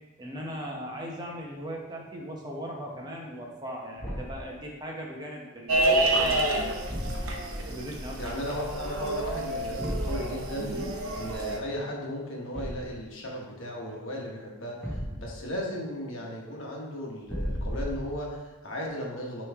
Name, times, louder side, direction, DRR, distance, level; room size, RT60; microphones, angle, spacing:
voice 1, 0.2-6.6 7.7-8.2 10.6-11.0, equal, 20° right, -1 dB, 0.7 m, -38 dB
Thump thud, 4.0-4.5 6.8-7.5 9.8-10.2 12.5-13.0 14.8-15.5 17.2-18.2, equal, 5° left, 1.1 m, -34 dB
sound 1, 5.7-11.6, right 1 dB, 75° right, 0.9 m, -28 dB
voice 2, 8.2-10.7 11.2-19.5, equal, 60° left, -2 dB, 1.2 m, -36 dB
9.1 x 3.1 x 3.5 m, 1.1 s
head